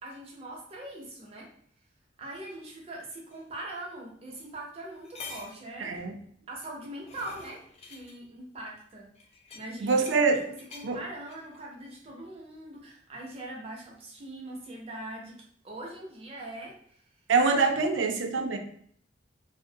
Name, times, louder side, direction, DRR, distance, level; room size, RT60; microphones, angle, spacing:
voice 1, 0.0-1.5 2.2-6.0 6.5-9.1 9.5-9.9 10.2-10.4 10.7-17.0, right 1 dB, 35° right, -2 dB, 0.6 m, -42 dB
sound 1, 3.3-3.4 4.3-4.4 4.8-5.6 6.6-8.1 9.2-10.3 10.6-10.9 11.3-11.6, left 4 dB, 35° left, 0.4 m, -47 dB
voice 2, 5.8-6.1 9.8-10.4 10.8-11.0 17.3-18.6, right 4 dB, 90° right, 6 dB, 0.4 m, -24 dB
2.5 x 2.0 x 2.7 m, 0.63 s
head